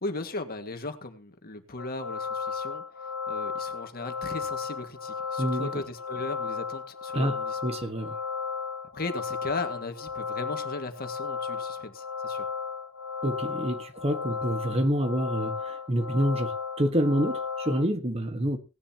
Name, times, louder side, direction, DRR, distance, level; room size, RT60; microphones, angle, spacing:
voice 1, 0.0-2.8 3.3-7.6 8.9-12.4, left 2 dB, 45° left, 1.9 m, -37 dB
sound 1, 1.8-17.8, left 5 dB, 80° left, 1.1 m, -34 dB
voice 2, 5.4-5.7 7.1-7.4 7.6-8.1 13.2-18.6, equal, 30° right, 1.6 m, -27 dB
18.5 x 11.0 x 2.9 m
head